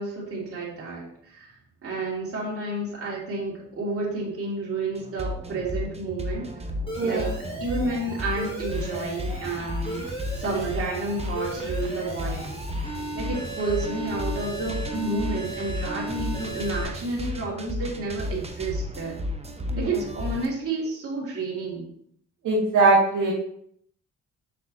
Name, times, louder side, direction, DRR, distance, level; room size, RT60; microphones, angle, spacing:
voice 1, 0.0-1.5 1.8-6.6 7.0-7.3 7.6-10.0 10.4-12.6 13.1-19.2 19.8-21.9, right 3 dB, 50° right, -5 dB, 3.1 m, -30 dB
sound 1, 5.0-20.5, left 1 dB, 20° right, 1.0 m, -33 dB
Alarm, 6.9-16.8, right 1 dB, 15° left, 2.3 m, -36 dB
voice 2, 7.0-7.3 19.7-20.0 22.4-23.3, right 3 dB, 80° right, -5 dB, 2.4 m, -21 dB
6.5 x 6.4 x 3.1 m, 0.67 s
cardioid pair, 90°, 30 cm